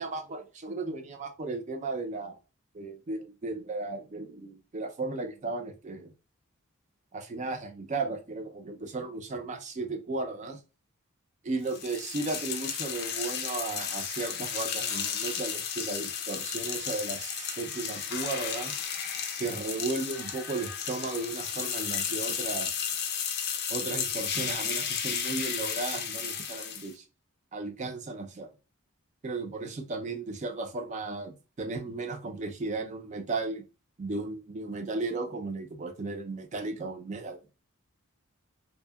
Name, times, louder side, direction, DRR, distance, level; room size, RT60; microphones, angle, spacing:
voice 1, 0.0-2.4 2.7-6.1 7.1-10.6 11.4-18.7 19.4-22.9 23.7-27.0 27.5-28.5 29.2-33.6 34.0-37.4, right 3 dB, 35° right, 0.4 m, -35 dB
sound 1, 11.7-26.9, left 7 dB, 50° left, 0.4 m, -33 dB
2.7 x 2.1 x 2.2 m
head